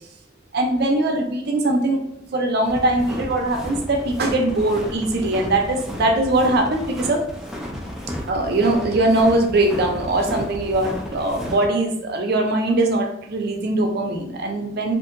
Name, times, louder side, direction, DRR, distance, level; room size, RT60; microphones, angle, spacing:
voice 1, 0.5-7.2 8.2-14.9, right 2 dB, 55° right, 3 dB, 0.5 m, -21 dB
sound 1, 2.6-11.7, equal, ahead, 0.4 m, -33 dB
2.7 x 2.5 x 2.5 m, 0.79 s
head